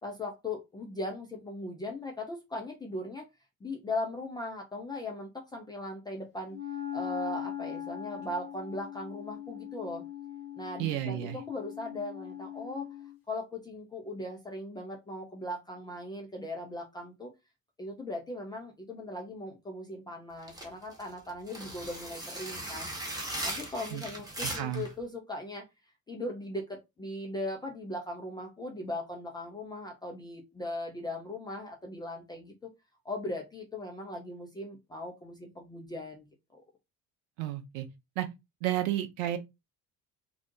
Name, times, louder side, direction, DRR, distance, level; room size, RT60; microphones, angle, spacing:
voice 1, 0.0-3.3 3.6-6.6 6.9-10.0 10.6-12.9 13.3-17.3 17.8-22.9 23.4-25.6 26.1-32.7 33.0-36.3 36.5-36.6, left 1 dB, 10° left, 0.3 m, -39 dB
Wind instrument woodwind instrument, 6.5-13.2, left 10 dB, 90° left, 0.7 m, -40 dB
voice 2, 10.8-11.4 23.9-24.0 24.4-24.8 37.4-37.9 38.2-38.3 38.6-39.4, right 13 dB, 60° right, 0.6 m, -31 dB
sound 1, 20.4-24.9, right 1 dB, 10° right, 0.8 m, -38 dB
2.5 x 2.1 x 2.6 m
figure-of-eight pair, 55°, 45 cm